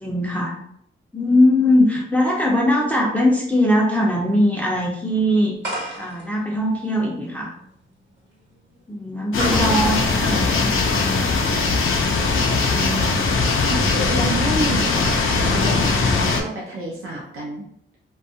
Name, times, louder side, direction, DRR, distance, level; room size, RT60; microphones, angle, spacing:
voice 1, 0.0-0.5 1.1-5.5 6.0-7.5 8.9-11.3, left 1 dB, 5° left, -3 dB, 0.4 m, -20 dB
sound 1, 5.6-11.2, right 1 dB, 60° right, 1.0 m, -35 dB
sound 2, 9.3-16.4, left 4 dB, 75° left, 0.5 m, -20 dB
voice 2, 9.6-9.9 12.7-13.2 13.7-17.6, right 1 dB, 90° right, -4 dB, 0.6 m, -29 dB
2.7 x 2.3 x 2.6 m, 0.72 s
wide cardioid pair, 145°, 21 cm